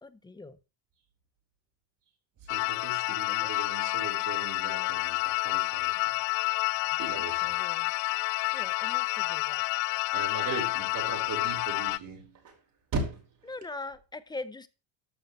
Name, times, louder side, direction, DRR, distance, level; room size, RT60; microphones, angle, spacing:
voice 1, 0.0-0.6 3.4-3.5 7.4-7.9 8.5-9.6 13.5-14.7, left 3 dB, 10° left, 0.6 m, -42 dB
voice 2, 2.4-6.2 6.7-7.6 10.1-12.6 12.9-13.5, right 3 dB, 45° right, 4.9 m, -38 dB
sound 1, 2.5-12.0, left 24 dB, 85° left, 0.6 m, -29 dB
13.5 x 9.9 x 3.3 m
cardioid pair, 140°, 48 cm